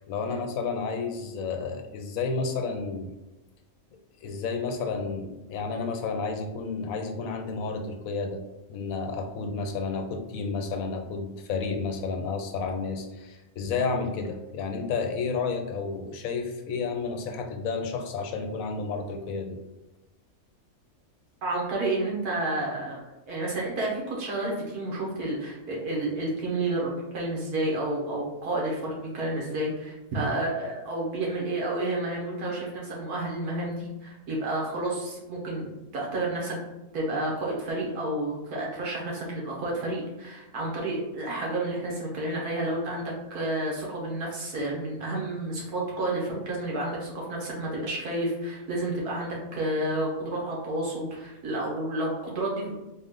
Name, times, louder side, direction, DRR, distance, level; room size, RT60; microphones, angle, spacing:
voice 1, 0.1-3.1 4.2-8.4 8.7-19.6, left 4 dB, 75° left, 5 dB, 1.0 m, -31 dB
voice 2, 21.4-23.0 23.3-36.6 36.9-52.8, right 2 dB, 85° right, -3 dB, 1.7 m, -30 dB
4.1 x 2.4 x 3.6 m, 1.0 s
omnidirectional pair, 1.5 m